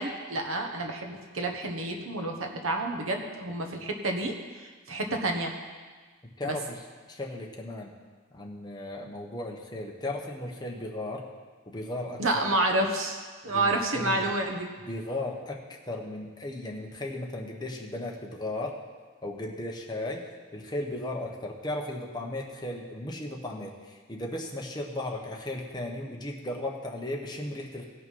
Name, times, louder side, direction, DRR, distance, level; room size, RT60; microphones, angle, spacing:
voice 1, 0.0-5.5 6.4-6.6 12.2-14.7, right 2 dB, 85° right, 3 dB, 1.3 m, -29 dB
voice 2, 6.4-6.8 7.1-7.9 8.3-11.3 11.7-12.6 13.5-14.3 14.9-18.8 19.2-27.9, left 1 dB, 20° left, 0 dB, 1.2 m, -36 dB
16.5 x 5.8 x 5.6 m, 1.4 s
head